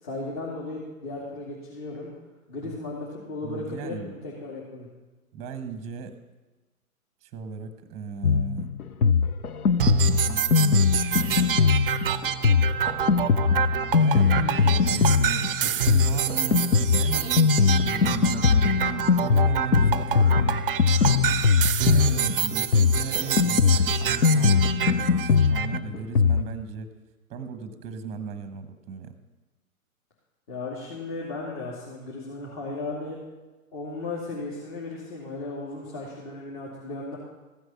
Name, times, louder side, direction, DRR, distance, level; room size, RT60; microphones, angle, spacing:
voice 1, 0.0-2.1 2.5-4.9 30.5-33.2 33.7-37.2, left 3 dB, 35° left, -5 dB, 2.6 m, -35 dB
voice 2, 3.4-4.1 5.3-6.1 7.2-8.7 10.2-10.9 13.9-20.7 21.8-26.9 27.3-29.1, right 6 dB, 15° right, 10 dB, 0.9 m, -36 dB
Drum kit, 8.2-26.4, left 5 dB, 90° left, 0.7 m, -21 dB
sound 1, 9.8-25.8, right 9 dB, 40° right, 0.5 m, -28 dB
15.0 x 7.9 x 5.6 m, 1.2 s
hypercardioid pair, 130°, 43 cm